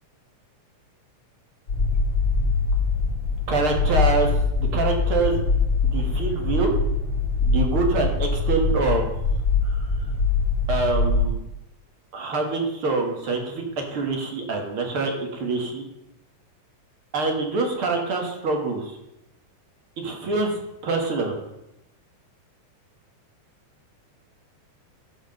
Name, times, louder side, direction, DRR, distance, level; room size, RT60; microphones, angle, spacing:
sound 1, 1.7-11.3, left 3 dB, 35° left, 4.7 m, -23 dB
voice 1, 3.5-4.3 4.6-5.4 5.8-6.7 7.4-9.1 9.6-10.1 10.7-11.4 12.1-15.8 17.1-19.0 20.0-21.4, right 3 dB, 50° right, 3 dB, 2.2 m, -25 dB
13.5 x 5.0 x 6.6 m, 0.85 s
omnidirectional pair, 3.6 m